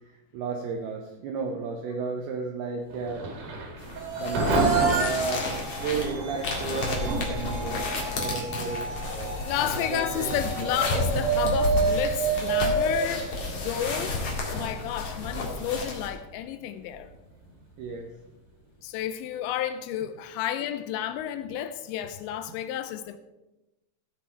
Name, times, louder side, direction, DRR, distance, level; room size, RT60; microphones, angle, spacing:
voice 1, 0.1-3.3 4.2-5.5 5.8-7.9 8.2-9.4 9.9-10.3 17.8-18.1, right 5 dB, 80° right, 2.2 m, -33 dB
Thunder / Rain, 2.9-19.6, right 2 dB, 55° right, 3.2 m, -36 dB
sound 1, 3.8-16.1, left 3 dB, 50° left, 1.9 m, -32 dB
sound 2, 4.0-14.1, right 4 dB, 40° right, 2.6 m, -29 dB
voice 2, 9.4-14.2 14.5-17.1 18.8-23.2, left 10 dB, 85° left, 2.7 m, -31 dB
15.0 x 7.6 x 4.4 m
omnidirectional pair, 5.6 m